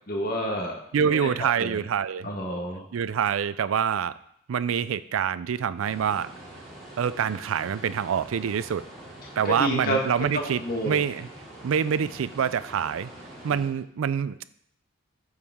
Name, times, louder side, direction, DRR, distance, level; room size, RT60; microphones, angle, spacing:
voice 1, 0.1-1.3 1.6-1.8 2.2-2.8 9.4-10.0 10.3-11.0, equal, 45° left, 1 dB, 1.4 m, -29 dB
voice 2, 0.9-2.3 2.9-4.1 4.5-6.3 7.0-8.8 9.4-11.3 11.6-13.1 13.4-14.4, right 7 dB, 85° right, 15 dB, 0.4 m, -26 dB
sound 1, 5.8-13.7, right 1 dB, ahead, 2.6 m, -45 dB
12.0 x 4.8 x 3.6 m, 0.71 s
head